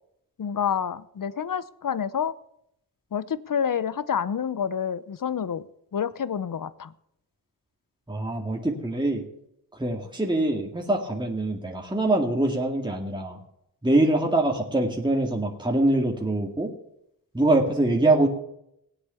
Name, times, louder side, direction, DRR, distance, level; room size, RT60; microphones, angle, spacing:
voice 1, 0.4-2.3 3.1-5.7 5.9-6.9, left 7 dB, 55° left, 17 dB, 0.8 m, -28 dB
voice 2, 8.1-9.2 9.7-13.4 13.8-16.7 17.3-18.3, right 2 dB, 10° right, 0 dB, 2.1 m, -24 dB
17.5 x 8.2 x 6.9 m, 0.79 s
cardioid pair, 60°, 40 cm